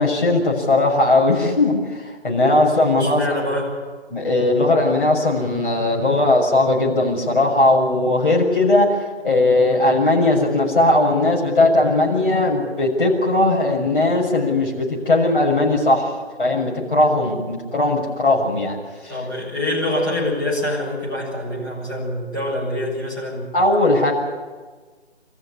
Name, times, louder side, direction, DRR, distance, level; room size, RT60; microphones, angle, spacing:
voice 1, 0.0-3.2 4.1-18.8 19.0-19.1 23.5-24.1, left 2 dB, 50° left, -2 dB, 6.7 m, -18 dB
voice 2, 3.0-3.7 19.1-23.5, left 1 dB, 20° left, -7 dB, 7.2 m, -25 dB
25.0 x 14.5 x 9.8 m, 1.4 s
figure-of-eight pair, 165°, 34 cm